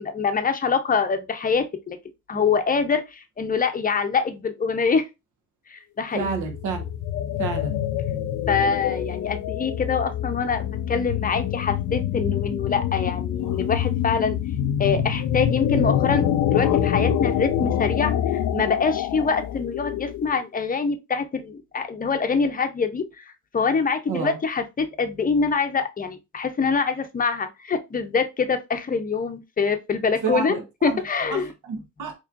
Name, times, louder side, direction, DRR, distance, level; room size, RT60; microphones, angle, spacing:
voice 1, 0.0-2.0 2.3-5.1 5.7-6.3 8.5-14.4 14.8-18.1 18.5-23.2 23.5-30.6 30.8-31.5, left 5 dB, 30° left, 0.7 m, -25 dB
voice 2, 6.1-6.8 7.4-7.8 24.1-24.4 30.2-31.0 31.3-32.1, right 5 dB, 75° right, 1.2 m, -29 dB
sound 1, 6.2-20.4, left 10 dB, 80° left, 0.5 m, -26 dB
4.2 x 3.0 x 2.5 m
cardioid pair, 90°, 30 cm